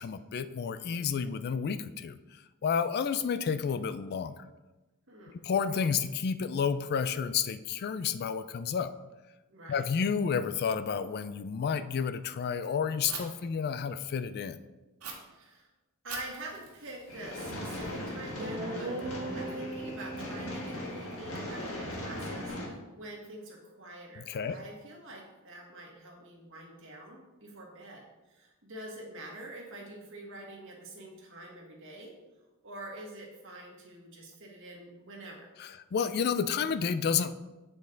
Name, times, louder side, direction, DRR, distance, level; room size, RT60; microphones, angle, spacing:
voice 1, 0.0-2.2 2.6-4.3 5.4-8.9 9.7-14.6 24.2-24.6 35.6-37.3, left 6 dB, 45° left, 12 dB, 0.3 m, -30 dB
voice 2, 5.1-5.4 9.5-9.9 15.3-15.7 16.0-32.1 32.6-35.5, right 1 dB, 60° right, -1 dB, 1.7 m, -46 dB
Fire, 13.1-13.2 15.0-15.1 16.1-18.0, right 6 dB, 85° right, 1.6 m, -44 dB
sound 1, 17.1-22.7, left 1 dB, 65° left, 1.6 m, -39 dB
Guitar, 17.8-17.9 18.4-22.5, right 2 dB, 40° right, 0.9 m, -40 dB
8.6 x 5.2 x 3.9 m, 1.1 s
head